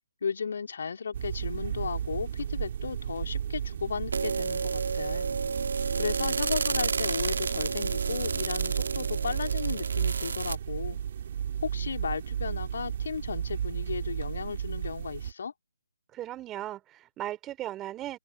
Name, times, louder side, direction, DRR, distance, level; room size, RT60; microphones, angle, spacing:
voice 1, 0.2-5.3 6.0-11.0 11.6-15.5, left 6 dB, 60° left, 3.1 m, -35 dB
sound 1, 1.1-15.3, right 9 dB, 45° right, 3.3 m, -33 dB
sound 2, 4.1-10.6, right 5 dB, 65° right, 1.9 m, -31 dB
voice 2, 16.1-18.2, right 14 dB, 15° right, 3.8 m, -37 dB
open air
figure-of-eight pair, 145°, 0 cm